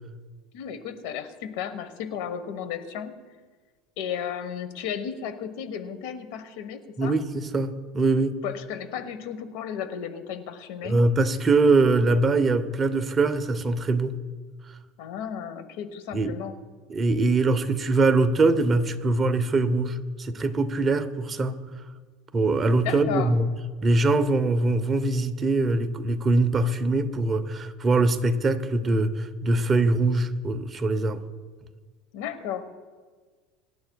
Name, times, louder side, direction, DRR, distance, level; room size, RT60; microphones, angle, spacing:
voice 1, 0.5-3.2 4.0-7.1 8.4-11.0 15.0-16.5 22.8-23.3 32.1-32.6, left 8 dB, 70° left, 1.1 m, -34 dB
voice 2, 7.0-8.4 10.8-14.1 16.1-16.4 16.9-21.6 22.3-23.5 23.8-31.2, right 2 dB, 25° right, 0.7 m, -23 dB
24.0 x 11.5 x 2.3 m
supercardioid pair, 125°, 0 cm